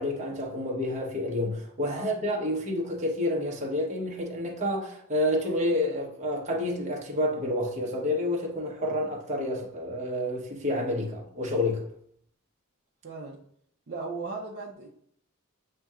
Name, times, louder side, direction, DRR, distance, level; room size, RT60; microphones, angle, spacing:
voice 1, 0.0-11.8, left 1 dB, 30° right, 1.0 m, -29 dB
voice 2, 13.0-13.4 13.9-14.9, right 4 dB, 50° right, 0.6 m, -37 dB
7.5 x 2.8 x 2.4 m
head